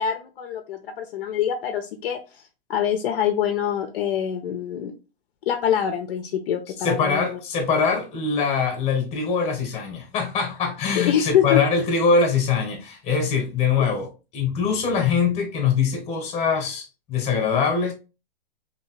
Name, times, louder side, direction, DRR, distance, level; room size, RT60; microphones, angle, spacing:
voice 1, 0.0-4.9 5.5-7.4 10.9-11.6 13.8-13.9, left 9 dB, 60° left, 0.5 m, -25 dB
voice 2, 6.8-17.9, left 5 dB, 20° left, 0.9 m, -23 dB
2.7 x 2.7 x 2.9 m
hypercardioid pair, 145°, 32 cm